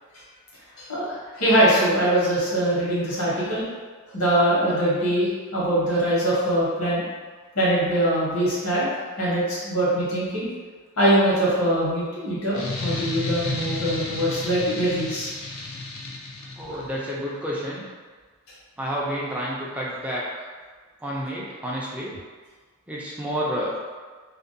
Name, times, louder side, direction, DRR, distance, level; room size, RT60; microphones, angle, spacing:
voice 1, 0.8-3.6 4.1-7.0 7.5-8.9 9.2-10.5 11.0-15.3 16.7-16.8, right 1 dB, 85° left, -8 dB, 1.1 m, -22 dB
sound 1, 12.5-17.0, left 2 dB, 65° left, 0.4 m, -32 dB
voice 2, 16.6-17.8 18.8-20.5 21.0-22.1 22.9-23.7, equal, 5° right, -5 dB, 0.4 m, -30 dB
2.5 x 2.2 x 2.6 m, 1.5 s
head